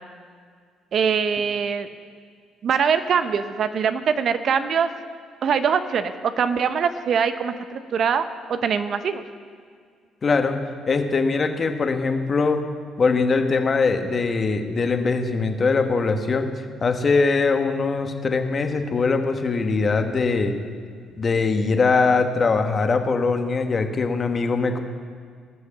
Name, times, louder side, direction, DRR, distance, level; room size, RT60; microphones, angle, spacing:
voice 1, 0.9-1.9 2.6-4.9 5.4-9.2, right 6 dB, 60° right, 10 dB, 0.7 m, -23 dB
voice 2, 10.2-10.6 10.9-12.6 13.0-16.5 16.8-20.5 21.2-24.8, left 4 dB, 40° left, 6 dB, 1.3 m, -21 dB
18.5 x 6.5 x 7.4 m, 2.1 s
supercardioid pair, 70°, 0 cm